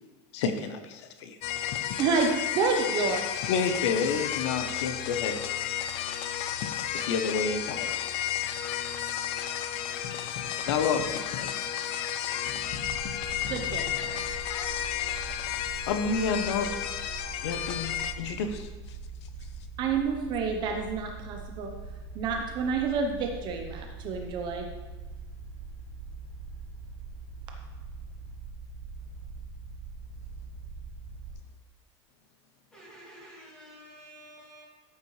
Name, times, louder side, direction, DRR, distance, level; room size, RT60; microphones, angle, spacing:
voice 1, 0.3-1.4 3.5-5.4 6.9-8.1 9.4-9.6 10.0-10.1 10.7-11.5 14.9-15.3 15.9-16.9 17.4-19.0, left 5 dB, 75° left, 8 dB, 0.9 m, -30 dB
sound 1, 1.4-18.1, left 10 dB, 40° left, 0.5 m, -32 dB
voice 2, 2.0-3.3 13.5-14.3 19.8-21.8 22.1-24.7, right 5 dB, 30° right, 2 dB, 0.8 m, -29 dB
sound 2, 12.7-31.3, right 4 dB, 45° right, 3.6 m, -42 dB
voice 3, 32.7-34.6, right 1 dB, 5° left, -7 dB, 2.6 m, -50 dB
13.0 x 8.3 x 3.2 m, 1.2 s
supercardioid pair, 175°, 15 cm